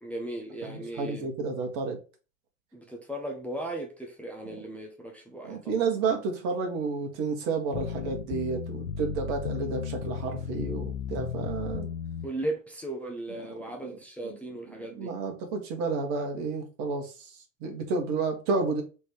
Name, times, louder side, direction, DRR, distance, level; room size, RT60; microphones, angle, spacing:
voice 1, 0.0-1.3 2.7-5.9 12.2-15.1, right 1 dB, 5° left, 0.8 m, -37 dB
voice 2, 0.6-2.0 4.4-4.6 5.4-11.9 14.2-14.4 14.9-18.8, right 4 dB, 50° right, 1.6 m, -31 dB
sound 1, 7.7-12.3, left 8 dB, 90° left, 0.6 m, -34 dB
3.5 x 3.1 x 4.5 m
hypercardioid pair, 85°, 40 cm